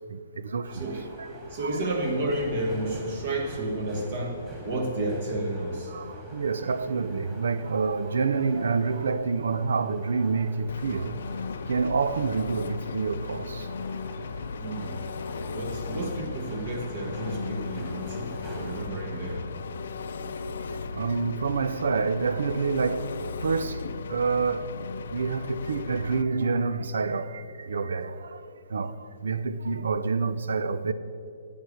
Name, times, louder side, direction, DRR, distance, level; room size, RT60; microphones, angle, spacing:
voice 1, 0.1-1.8 5.9-11.2 11.7-13.7 20.2-20.3 20.9-23.1 23.4-24.7 25.1-28.4 28.7-30.9, right 4 dB, 85° right, 0.6 m, -28 dB
sound 1, 0.6-19.4, equal, 15° right, 2.6 m, -45 dB
voice 2, 0.7-1.1 1.5-5.9 14.6-15.0 15.5-19.4, right 1 dB, 40° right, 1.5 m, -31 dB
Engine, 10.7-26.2, left 4 dB, 65° left, 0.6 m, -36 dB
10.0 x 8.7 x 7.9 m
hypercardioid pair, 165°, 0 cm